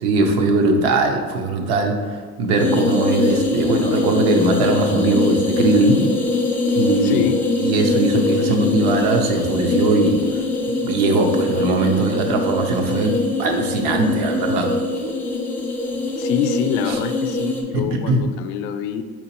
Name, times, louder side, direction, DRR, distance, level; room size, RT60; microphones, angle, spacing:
voice 1, 0.0-6.1 6.8-7.2 7.6-10.2 10.8-14.7 16.9-17.0 17.7-18.2, right 2 dB, 65° right, 4 dB, 0.7 m, -20 dB
sound 1, 2.6-17.6, left 3 dB, 5° left, 0.3 m, -23 dB
voice 2, 7.0-7.4 16.2-19.0, left 8 dB, 80° left, 9 dB, 0.5 m, -25 dB
4.4 x 3.9 x 2.9 m, 1.5 s
cardioid pair, 140°, 38 cm